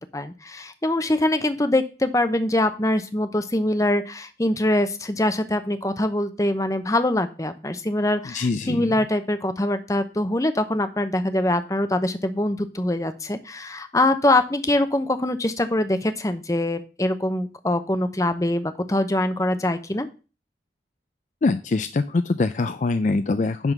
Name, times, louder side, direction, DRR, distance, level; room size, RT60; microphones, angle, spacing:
voice 1, 0.1-20.1, left 1 dB, 20° left, 9 dB, 0.7 m, -23 dB
voice 2, 8.2-8.9 21.4-23.7, left 3 dB, 40° left, 10 dB, 0.4 m, -23 dB
10.5 x 3.8 x 6.6 m, 0.34 s
head